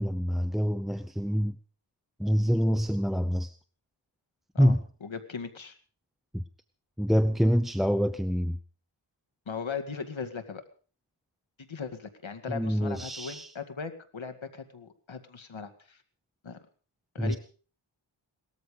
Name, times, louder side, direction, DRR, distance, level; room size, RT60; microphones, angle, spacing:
voice 1, 0.0-1.6 2.2-3.5 4.6-4.8 6.3-6.4 7.0-8.6 12.5-13.5 17.2-17.4, equal, ahead, 12 dB, 0.7 m, -26 dB
voice 2, 4.5-5.8 9.5-10.6 11.6-16.0 16.4-16.6 17.1-17.4, left 5 dB, 65° left, 7 dB, 2.2 m, -38 dB
18.5 x 14.0 x 5.2 m, 0.40 s
wide cardioid pair, 90°, 50 cm